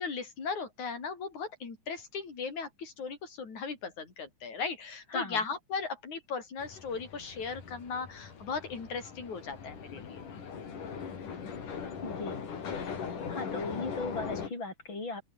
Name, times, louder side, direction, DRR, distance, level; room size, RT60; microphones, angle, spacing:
voice 1, 0.0-10.2 14.3-14.5, left 5 dB, 65° left, 6.1 m, -37 dB
sound 1, 6.6-14.5, left 6 dB, 85° left, 5.2 m, -40 dB
voice 2, 12.0-12.4 13.3-15.2, left 3 dB, 35° left, 7.5 m, -37 dB
open air
omnidirectional pair, 3.6 m